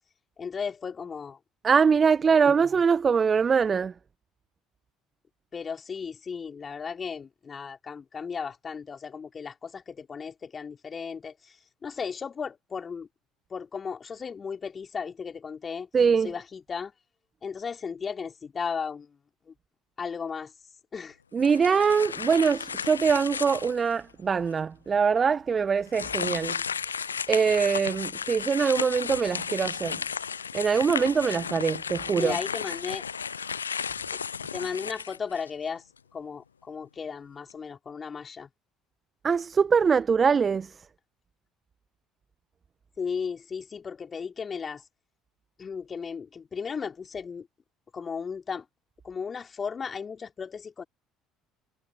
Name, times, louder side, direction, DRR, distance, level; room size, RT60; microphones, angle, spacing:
voice 1, 0.4-1.4 2.3-2.4 5.5-11.6 11.8-13.1 13.5-15.9 16.2-16.9 17.4-19.2 19.5-19.6 20.0-20.5 20.9-21.2 32.1-33.0 34.5-35.8 36.1-38.5 43.0-44.8 45.6-47.5 47.9-48.7 49.0-50.8, left 6 dB, 35° left, 3.6 m, -35 dB
voice 2, 1.6-3.9 15.9-16.3 21.3-26.6 27.3-30.0 30.5-32.3 39.2-40.8, right 6 dB, 35° right, 1.3 m, -23 dB
sound 1, 21.4-23.9 24.5-24.6 25.9-35.7, left 6 dB, 85° left, 0.6 m, -34 dB
figure-of-eight pair, 55°, 0 cm